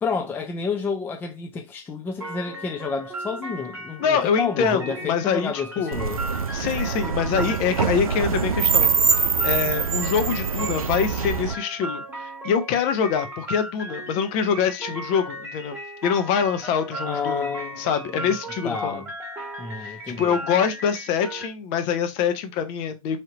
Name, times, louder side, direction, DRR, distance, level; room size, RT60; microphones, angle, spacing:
voice 1, 0.0-6.2 17.0-18.3 18.6-19.1 19.6-20.4, left 5 dB, 10° left, 0.4 m, -30 dB
sound 1, 2.2-21.5, right 1 dB, 10° right, 1.3 m, -36 dB
voice 2, 4.0-5.9 6.5-8.9 9.4-15.8 16.0-17.5 17.8-19.0 19.8-23.2, left 7 dB, 40° left, 0.7 m, -25 dB
sound 2, 5.9-11.5, right 6 dB, 85° right, 0.4 m, -24 dB
3.4 x 2.7 x 3.8 m
figure-of-eight pair, 105°, 18 cm